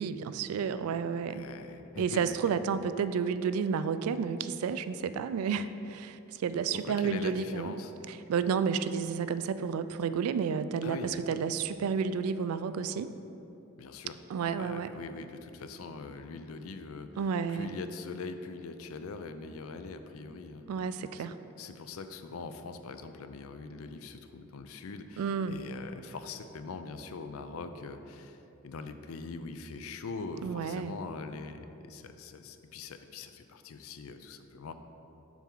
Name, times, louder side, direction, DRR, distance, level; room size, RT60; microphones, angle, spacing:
voice 1, 0.0-1.5 2.0-7.7 8.3-13.1 14.3-14.9 17.2-17.8 20.7-21.4 25.2-25.6 30.4-31.0, right 6 dB, 85° right, 12 dB, 0.3 m, -31 dB
voice 2, 1.3-2.2 6.7-7.9 10.8-11.2 13.8-14.2 14.5-20.6 21.2-21.3 21.6-28.4 28.6-34.7, left 4 dB, 80° left, 9 dB, 0.4 m, -42 dB
7.1 x 5.7 x 3.8 m, 3.0 s
head